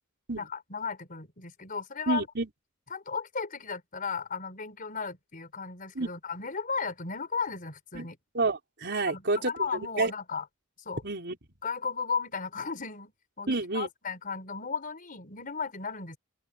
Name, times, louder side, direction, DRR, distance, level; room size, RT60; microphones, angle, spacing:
voice 1, 0.4-2.3 2.9-8.2 9.1-10.4 10.8-11.0 11.6-13.1 13.4-13.5 13.7-16.2, left 5 dB, 45° left, 5.0 m, -35 dB
voice 2, 2.1-2.5 5.9-6.1 7.9-8.1 8.3-9.5 10.0-10.1 11.0-11.4 13.5-13.9, right 3 dB, 55° right, 4.3 m, -29 dB
open air
head